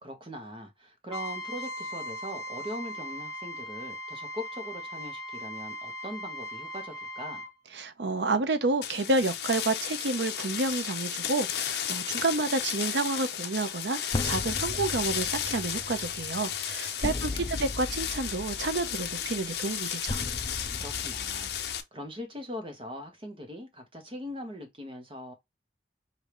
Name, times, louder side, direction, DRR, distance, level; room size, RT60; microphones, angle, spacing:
voice 1, 0.0-7.5 16.9-17.6 20.8-25.3, equal, 30° right, 1.2 m, -41 dB
Trumpet, 1.1-7.5, equal, 5° left, 1.6 m, -39 dB
voice 2, 7.8-20.2, right 3 dB, 80° right, 0.7 m, -30 dB
sound 1, 8.8-21.8, left 10 dB, 70° left, 0.6 m, -34 dB
sound 2, 11.5-11.8 14.1-21.8, left 2 dB, 25° left, 0.5 m, -37 dB
5.1 x 2.7 x 3.0 m
head